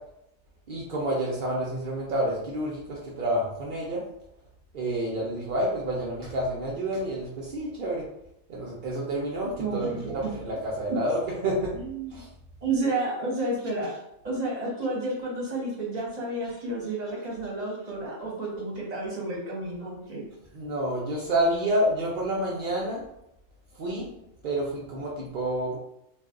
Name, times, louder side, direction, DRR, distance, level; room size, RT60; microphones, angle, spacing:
voice 1, 0.7-4.0 4.7-8.0 8.5-11.7 12.1-12.2 20.5-23.0 23.8-24.1 24.4-25.8, right 1 dB, 65° right, -4 dB, 0.5 m, -29 dB
voice 2, 9.6-10.3 10.9-11.0 11.7-12.1 12.6-13.9 14.2-20.2, right 2 dB, 35° right, -3 dB, 0.8 m, -31 dB
2.5 x 2.3 x 3.6 m, 0.80 s
omnidirectional pair, 1.5 m